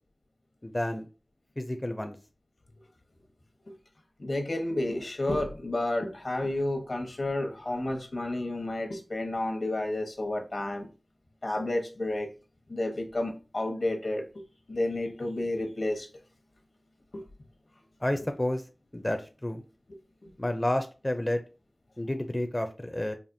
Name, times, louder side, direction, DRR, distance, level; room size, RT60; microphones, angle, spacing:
voice 1, 0.6-1.1 1.6-2.2 18.0-18.6 18.9-19.6 20.4-21.4 22.0-23.2, left 1 dB, 25° left, 0.4 m, -30 dB
voice 2, 4.2-10.9 11.4-12.3 12.7-14.4 14.7-16.1 17.1-17.2 20.2-20.3, left 1 dB, 75° left, 1.0 m, -31 dB
4.9 x 2.6 x 2.6 m
wide cardioid pair, 45°, 0 cm